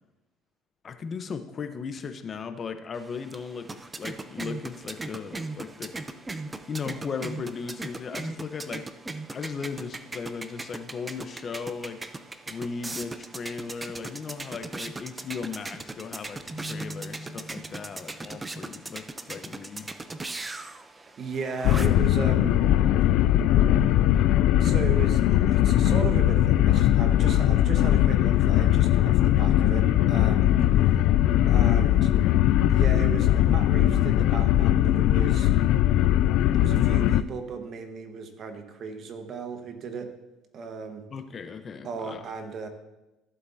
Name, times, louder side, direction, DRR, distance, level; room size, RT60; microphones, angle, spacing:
voice 1, 0.8-3.7 3.9-5.9 6.7-8.8 9.3-12.0 12.5-19.9 30.4-30.7 41.1-42.3, left 5 dB, 40° left, 9 dB, 0.9 m, -37 dB
sound 1, 2.9-22.1, right 2 dB, 20° right, 0.6 m, -39 dB
Keyboard (musical), 16.5-18.4, equal, 5° left, 2.0 m, -42 dB
voice 2, 20.9-22.6 24.6-30.5 31.5-32.1 32.7-35.5 36.5-40.1 40.5-41.0 41.8-42.7, right 5 dB, 50° right, 6 dB, 1.4 m, -36 dB
sound 2, 21.6-37.2, left 12 dB, 70° left, 0.3 m, -20 dB
15.0 x 8.0 x 2.8 m, 1.0 s
supercardioid pair, 80°, 0 cm